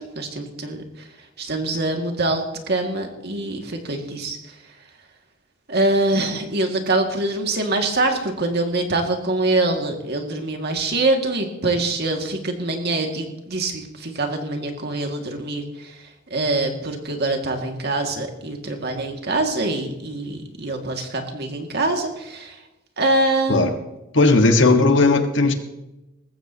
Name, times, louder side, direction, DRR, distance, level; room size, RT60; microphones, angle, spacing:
voice 1, 0.2-0.8 1.4-4.4 5.7-15.9 16.3-22.6 23.0-23.7, right 2 dB, 55° right, 3 dB, 2.2 m, -24 dB
voice 2, 24.1-25.5, left 3 dB, 65° left, 6 dB, 1.6 m, -16 dB
20.0 x 15.0 x 2.9 m, 0.98 s
head